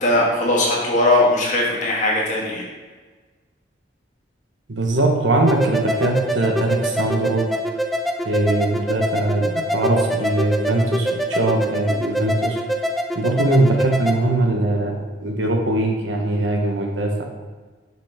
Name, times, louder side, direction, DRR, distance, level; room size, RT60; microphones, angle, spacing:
voice 1, 0.0-2.6, left 1 dB, 40° left, -4 dB, 1.5 m, -19 dB
voice 2, 4.7-7.5 8.2-12.6 13.1-17.2, right 2 dB, 65° right, 2 dB, 0.9 m, -21 dB
sound 1, 5.5-14.2, equal, ahead, 0.3 m, -25 dB
6.2 x 5.5 x 3.4 m, 1.4 s
head